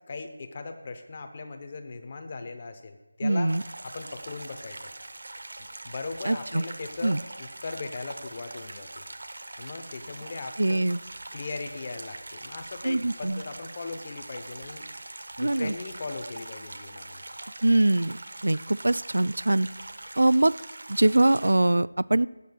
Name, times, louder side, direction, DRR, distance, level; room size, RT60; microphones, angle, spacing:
voice 1, 0.1-3.5 3.8-4.9 5.6-9.0 9.6-10.9 11.3-14.9 15.4-17.2, left 3 dB, 25° left, 6 dB, 0.7 m, -39 dB
voice 2, 3.2-3.6 6.2-6.6 7.0-7.2 10.6-11.0 12.8-13.4 15.4-15.7 17.6-18.2 18.4-19.7 20.2-20.5 20.9-22.3, right 1 dB, 80° right, 18 dB, 0.3 m, -23 dB
sound 1, 3.5-21.5, right 2 dB, 55° right, 0.9 m, -43 dB
21.0 x 8.1 x 2.3 m, 1.1 s
figure-of-eight pair, 175°, 0 cm